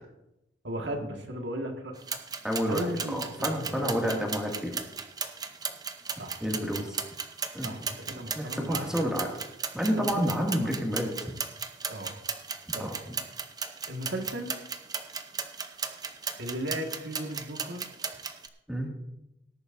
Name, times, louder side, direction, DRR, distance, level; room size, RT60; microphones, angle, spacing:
voice 1, 0.6-1.9 2.7-4.0 6.1-6.8 7.6-8.9 9.9-10.5 11.9-12.1 12.7-12.9 13.9-14.5 16.4-17.9, right 1 dB, 80° right, 3 dB, 1.8 m, -36 dB
sound 1, 2.0-18.5, right 6 dB, 20° right, 0.7 m, -36 dB
voice 2, 2.4-2.9 3.1-4.7 6.4-6.9 7.5-7.7 8.3-9.3 9.7-11.3 12.7-13.1 18.7-18.9, equal, 5° right, -1 dB, 2.1 m, -29 dB
18.5 x 11.0 x 2.6 m, 0.87 s
head